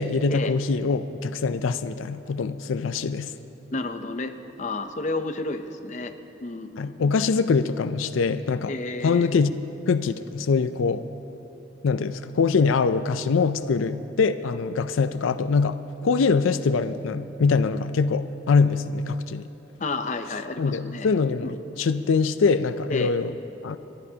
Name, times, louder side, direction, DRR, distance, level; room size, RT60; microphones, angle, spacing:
voice 1, 0.0-3.3 6.8-8.7 9.0-9.5 9.9-11.0 11.8-19.5 20.6-23.3 23.6-23.8, left 4 dB, 85° left, 12 dB, 0.4 m, -23 dB
voice 2, 3.7-6.1 6.4-7.1 8.7-9.3 19.8-21.1 21.4-21.5 22.9-23.1, left 2 dB, 35° left, 7 dB, 0.6 m, -31 dB
29.5 x 12.0 x 2.8 m, 3.0 s
head